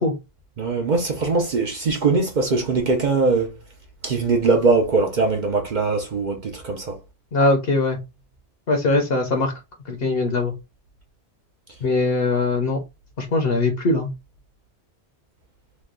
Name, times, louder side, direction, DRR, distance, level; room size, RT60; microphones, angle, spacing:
voice 1, 0.6-3.5 4.0-7.0, right 3 dB, 50° right, 0.7 m, -21 dB
voice 2, 7.3-8.0 8.7-9.5 9.9-10.5 11.8-12.8 13.2-14.1, left 2 dB, 65° left, 0.9 m, -21 dB
3.0 x 2.3 x 3.6 m
omnidirectional pair, 1.1 m